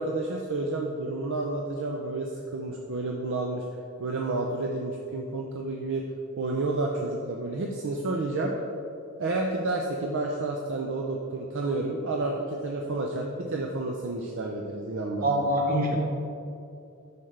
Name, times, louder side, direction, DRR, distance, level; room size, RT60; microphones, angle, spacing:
voice 1, 0.0-3.6 4.0-6.0 6.4-8.5 9.2-15.3, right 2 dB, 60° right, 0 dB, 0.5 m, -30 dB
voice 2, 15.2-16.0, right 1 dB, 45° right, -1 dB, 1.2 m, -24 dB
7.4 x 5.7 x 3.3 m, 2.6 s
head